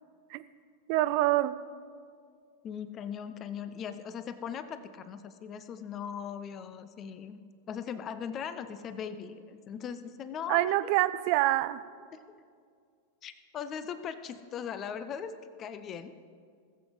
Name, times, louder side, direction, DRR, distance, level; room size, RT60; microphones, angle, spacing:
voice 1, 0.9-1.5 10.5-11.8, right 16 dB, 45° right, 14 dB, 0.5 m, -26 dB
voice 2, 2.6-7.4 7.7-10.9 12.1-12.4 13.2-16.1, left 7 dB, 30° left, 13 dB, 0.7 m, -39 dB
19.0 x 7.9 x 4.8 m, 2.1 s
figure-of-eight pair, 90°, 0 cm